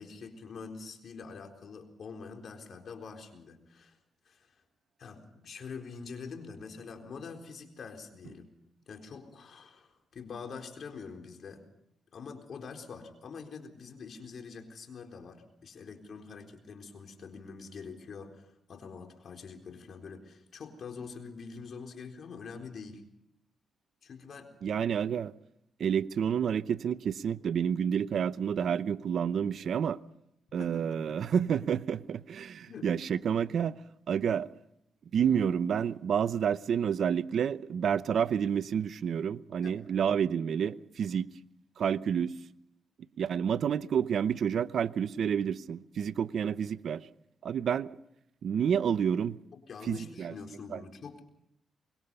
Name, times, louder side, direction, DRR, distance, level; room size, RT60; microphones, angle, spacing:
voice 1, 0.0-4.0 4.3-4.6 5.0-8.5 8.9-11.7 12.1-23.0 24.0-24.5 30.6-31.3 32.7-32.9 39.6-39.8 48.7-48.8 49.5-51.2, left 5 dB, 60° left, 4.0 m, -45 dB
voice 2, 24.6-25.3 25.8-30.0 30.5-33.8 34.1-34.5 35.1-41.3 41.8-42.3 43.2-47.1 47.4-47.9 48.4-49.4 49.9-50.3 50.7-50.8, right 8 dB, 70° right, 0.7 m, -29 dB
24.5 x 22.0 x 5.5 m
cardioid pair, 70°, 0 cm